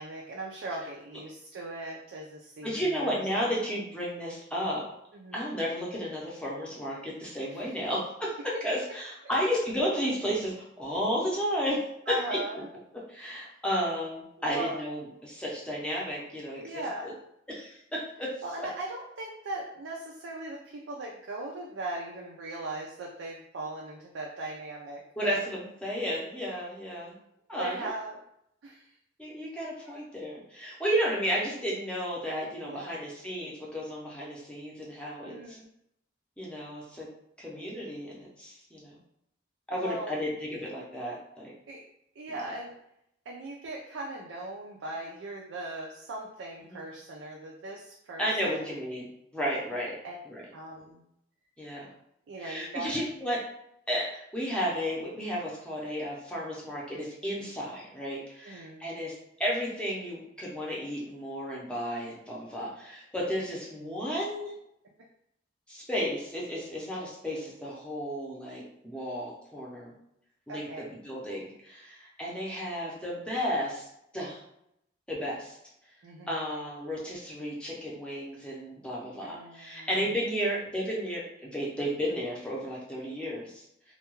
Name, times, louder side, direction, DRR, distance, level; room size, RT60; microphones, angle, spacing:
voice 1, 0.0-3.6 5.1-5.5 7.5-7.7 9.2-9.4 12.1-12.7 14.4-14.8 16.5-17.2 18.4-25.4 27.6-28.2 28.6-28.9 29.9-30.0 32.6-32.9 35.2-35.7 39.7-40.1 41.7-41.8 42.2-42.8 43.3-48.8 50.0-50.2 50.5-51.0 52.3-52.9 58.4-58.9 70.5-70.9 76.0-76.3 79.2-79.9, right 2 dB, 80° right, -1 dB, 0.4 m, -39 dB
voice 2, 2.6-4.8 5.3-8.4 8.6-12.1 13.1-17.1 17.5-18.3 25.2-27.1 27.5-27.9 29.2-35.6 36.4-37.1 37.4-38.9 39.7-41.5 46.7-46.8 48.2-49.1 49.3-49.9 50.3-50.5 51.6-51.9 52.4-53.4 53.9-59.1 59.4-64.5 65.7-69.9 70.5-73.9 74.1-74.4 75.1-75.6 76.3-83.6, equal, 5° left, -5 dB, 0.6 m, -33 dB
2.2 x 2.2 x 3.0 m, 0.77 s
head